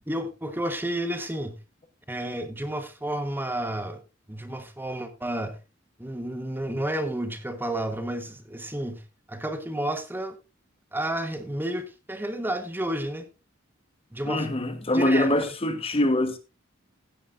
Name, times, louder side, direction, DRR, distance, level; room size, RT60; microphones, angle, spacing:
voice 1, 0.1-1.6 2.1-4.0 4.3-5.6 6.0-9.0 9.3-10.4 10.9-13.3 14.1-14.5 14.9-15.5, right 1 dB, 10° right, 1.2 m, -31 dB
voice 2, 14.3-16.4, left 1 dB, 30° left, 1.1 m, -24 dB
16.5 x 10.0 x 2.5 m
head